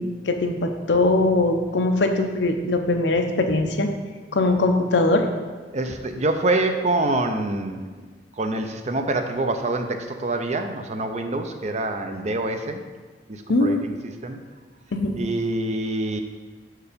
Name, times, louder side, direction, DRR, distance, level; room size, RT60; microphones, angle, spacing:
voice 1, 0.0-3.9 4.3-5.3 13.5-13.9 14.9-15.2, left 2 dB, 85° left, 5 dB, 0.7 m, -21 dB
voice 2, 5.7-7.8 8.4-12.8 13.3-13.9 14.2-14.4 15.2-16.2, right 2 dB, 40° right, 6 dB, 0.6 m, -25 dB
6.6 x 4.7 x 5.1 m, 1.4 s
head